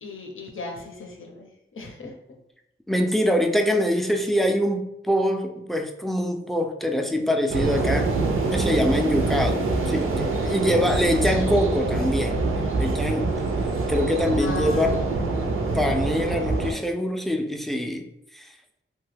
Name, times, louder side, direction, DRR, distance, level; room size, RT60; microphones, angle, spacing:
voice 1, 0.0-1.5 1.7-2.1 14.4-15.3, left 3 dB, 75° left, 2 dB, 0.6 m, -36 dB
voice 2, 2.9-8.1 8.5-12.4 12.8-13.3 13.9-15.0 15.7-18.0 18.3-18.5, equal, ahead, 4 dB, 0.3 m, -24 dB
sound 1, 7.5-16.7, right 3 dB, 80° right, 0.4 m, -25 dB
2.7 x 2.2 x 3.2 m, 0.81 s
wide cardioid pair, 75°, 21 cm